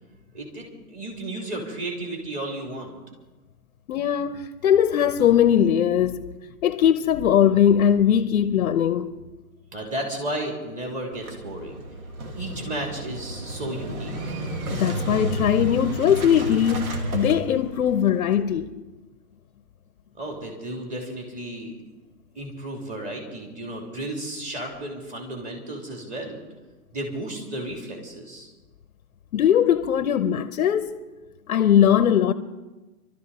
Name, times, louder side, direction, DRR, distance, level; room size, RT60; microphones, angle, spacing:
voice 1, 0.3-2.9 9.7-11.8 12.3-14.1 20.1-21.8 22.3-26.4 26.9-28.5, right 1 dB, 15° right, 3.2 m, -33 dB
voice 2, 3.9-6.2 6.6-9.1 14.8-18.7 29.3-31.0 31.5-32.3, left 9 dB, 55° left, 0.9 m, -20 dB
Motorcycle / Engine starting, 11.1-18.4, right 1 dB, 60° right, 2.5 m, -31 dB
25.5 x 12.5 x 4.2 m
hypercardioid pair, 145°, 48 cm